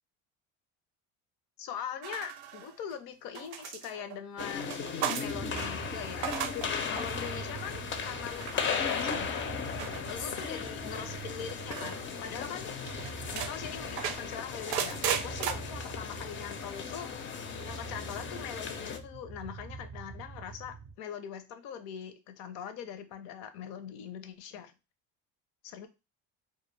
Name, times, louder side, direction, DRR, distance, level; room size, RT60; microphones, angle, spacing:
voice 1, 1.6-4.7 5.1-6.3 6.9-9.5 10.1-12.7 13.3-17.1 17.6-24.7 25.6-25.9, left 8 dB, 75° left, 9 dB, 0.6 m, -42 dB
sound 1, 2.0-2.9 3.3-5.7 6.1-6.7 7.0-7.4 8.3-8.7 9.8-10.5 11.7-12.0 12.4-12.5 12.9-13.5 14.0-15.5, right 9 dB, 85° right, 0.5 m, -35 dB
sound 2, 4.4-19.0, left 6 dB, 35° left, 0.4 m, -37 dB
sound 3, 5.2-20.9, right 5 dB, 30° right, 0.4 m, -45 dB
2.3 x 2.3 x 3.1 m, 0.27 s
supercardioid pair, 100°, 35 cm